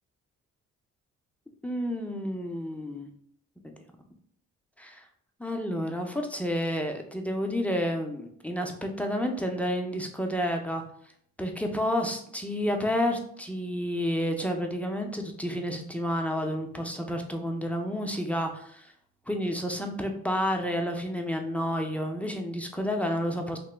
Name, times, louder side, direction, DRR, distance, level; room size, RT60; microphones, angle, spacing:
voice 1, 1.6-3.1 3.6-3.7 4.8-5.1 5.4-10.8 11.4-18.9 19.3-23.6, equal, 5° left, 3 dB, 0.4 m, -30 dB
2.9 x 2.2 x 3.2 m, 0.65 s
cardioid pair, 90°, 30 cm